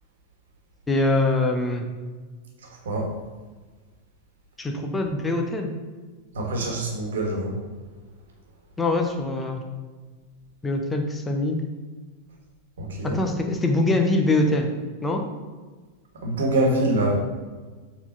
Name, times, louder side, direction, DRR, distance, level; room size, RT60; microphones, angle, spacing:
voice 1, 0.9-1.8 4.6-5.7 8.8-9.6 10.6-11.6 13.1-14.7 15.0-15.2, left 2 dB, 10° left, 3 dB, 0.9 m, -23 dB
voice 2, 6.3-7.6 12.8-13.1 16.2-17.2, right 1 dB, 65° right, 0 dB, 1.5 m, -24 dB
7.1 x 4.3 x 4.0 m, 1.4 s
figure-of-eight pair, 90°, 0 cm